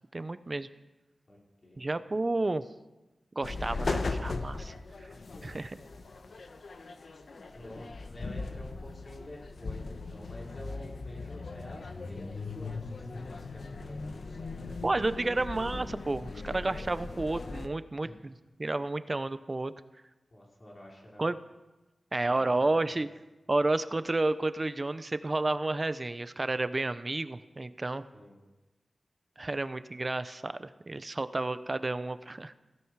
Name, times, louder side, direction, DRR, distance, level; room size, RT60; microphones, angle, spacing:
voice 1, 0.1-0.7 1.8-2.6 3.3-4.7 5.4-5.7 14.8-18.3 18.6-19.7 21.2-21.4 22.1-23.1 23.5-28.0 29.4-32.6, right 2 dB, 30° right, 13 dB, 0.7 m, -31 dB
voice 2, 1.3-1.8 5.2-5.6 7.5-15.3 18.0-18.2 20.3-21.3 22.2-23.0 28.1-28.4, left 1 dB, 35° left, -3 dB, 4.7 m, -49 dB
sound 1, 3.4-17.7, left 3 dB, 65° left, 1.1 m, -39 dB
16.5 x 16.5 x 4.7 m, 1.1 s
wide cardioid pair, 120°, 0 cm